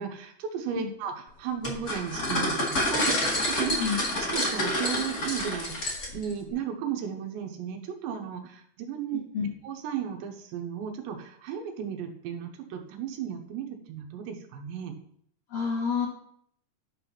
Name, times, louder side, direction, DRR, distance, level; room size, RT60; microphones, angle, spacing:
voice 1, 0.0-3.8 4.2-9.2 9.6-14.9, right 8 dB, 90° right, 4 dB, 3.3 m, -35 dB
sound 1, 1.6-6.3, left 1 dB, 45° left, 1.2 m, -28 dB
voice 2, 9.1-9.5 15.5-16.1, left 6 dB, 65° left, -2 dB, 1.6 m, -29 dB
11.5 x 4.1 x 5.9 m, 0.67 s
omnidirectional pair, 4.9 m